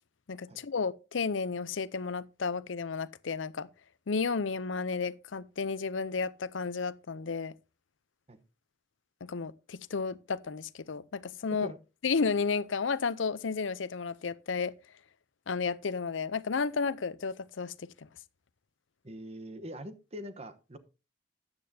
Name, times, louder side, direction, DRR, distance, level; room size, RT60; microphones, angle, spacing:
voice 1, 0.3-3.7 4.1-7.5 9.2-11.7 12.0-14.7 15.5-17.7, left 5 dB, 90° left, 0.6 m, -32 dB
voice 2, 19.0-20.8, equal, 35° right, 1.0 m, -43 dB
13.0 x 9.7 x 2.8 m
head